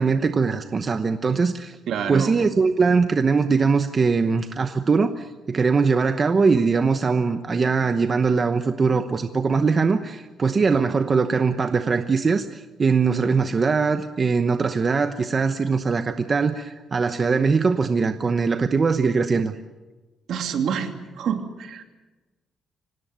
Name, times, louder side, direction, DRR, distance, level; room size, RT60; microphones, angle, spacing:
voice 1, 0.0-1.8 2.1-19.5, right 4 dB, 30° right, 9 dB, 0.9 m, -21 dB
voice 2, 1.9-2.4 20.3-21.8, right 7 dB, 65° right, 7 dB, 2.7 m, -27 dB
25.0 x 18.5 x 9.4 m, 1.2 s
cardioid pair, 160°, 0 cm